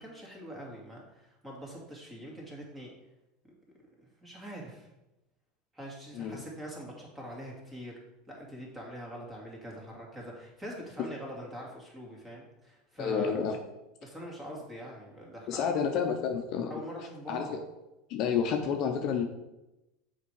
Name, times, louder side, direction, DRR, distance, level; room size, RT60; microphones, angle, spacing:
voice 1, 0.0-2.9 4.0-4.9 5.7-7.9 8.3-13.3 14.0-15.8 16.7-17.6, equal, 15° right, -2 dB, 2.3 m, -43 dB
voice 2, 13.0-13.6 15.5-16.8 17.3-17.6 18.1-19.2, left 6 dB, 50° left, 4 dB, 0.8 m, -30 dB
6.8 x 4.5 x 4.8 m, 0.96 s
supercardioid pair, 125°, 0 cm